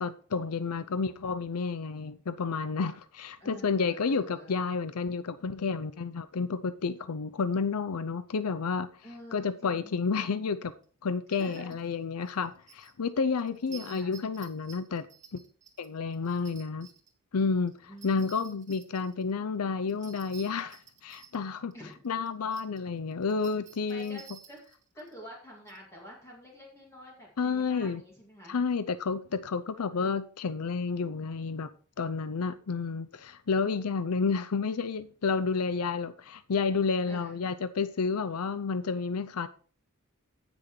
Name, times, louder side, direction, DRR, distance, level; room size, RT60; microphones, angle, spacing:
voice 1, 0.0-8.9 9.3-10.7 11.0-15.1 15.8-16.9 17.3-21.7 22.0-24.2 27.4-28.0 28.5-31.7 32.0-39.5, left 5 dB, 80° left, 0.6 m, -30 dB
voice 2, 3.4-4.7 9.0-10.0 11.3-11.8 13.7-14.2 17.9-18.6 21.7-22.0 23.9-24.6 24.9-28.6 29.7-30.1 37.0-37.4, equal, 15° left, 2.3 m, -48 dB
sound 1, 10.8-10.9 11.3-12.0 12.2-12.9 13.4-17.1 17.7-19.3 19.9-22.8 23.1-25.1 25.7-25.8, right 8 dB, 35° right, 1.9 m, -53 dB
16.5 x 6.2 x 3.2 m
head